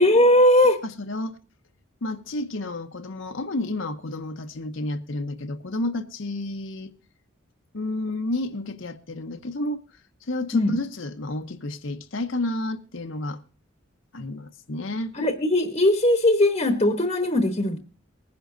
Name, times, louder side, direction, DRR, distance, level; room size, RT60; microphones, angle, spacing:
voice 1, 0.0-0.8 10.5-10.8 15.1-17.8, left 1 dB, 30° left, 1.0 m, -19 dB
voice 2, 0.8-1.4 2.0-6.9 7.7-9.8 10.2-13.4 14.1-15.1, left 2 dB, 60° left, 0.8 m, -31 dB
20.5 x 10.5 x 2.6 m
head